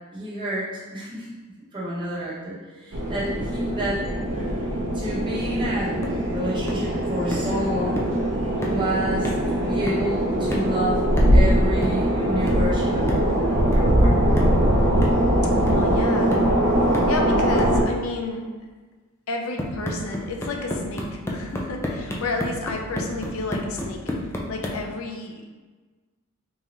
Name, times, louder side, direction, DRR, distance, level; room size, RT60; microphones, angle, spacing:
voice 1, 0.1-1.3 1.7-4.2 4.9-8.1 8.7-14.5, right 1 dB, 25° right, -8 dB, 1.1 m, -30 dB
sound 1, 2.9-17.8, equal, 65° right, 0.7 m, -21 dB
sound 2, 6.0-6.2 6.7-6.9 7.3-7.6 8.0-8.2 8.6-8.9 9.2-9.5 9.9-10.1 10.5-10.8 11.2-11.5 11.8-12.1 12.5-12.7 13.1-13.3 13.7-14.0 14.4-14.6 15.0-15.4 15.7-15.9 16.3-16.6 16.9-17.2 17.6-17.8 19.6-24.9, left 1 dB, 10° left, 0.4 m, -31 dB
voice 2, 15.5-16.5 17.1-18.5 19.3-24.0 24.5-25.4, left 3 dB, 85° left, 2 dB, 0.5 m, -31 dB
3.6 x 2.7 x 3.0 m, 1.3 s
head